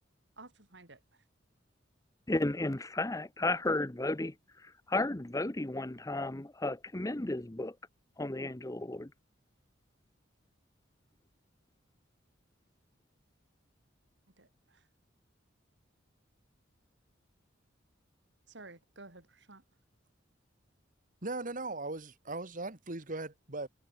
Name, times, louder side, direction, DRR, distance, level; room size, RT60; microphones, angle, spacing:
voice 1, 0.4-1.2 14.4-14.9 18.5-19.6, right 3 dB, 65° right, 4.2 m, -53 dB
voice 2, 2.3-4.3 4.6-7.7 8.2-9.1, left 2 dB, 15° left, 0.8 m, -33 dB
voice 3, 21.2-23.7, right 2 dB, 45° right, 2.1 m, -38 dB
head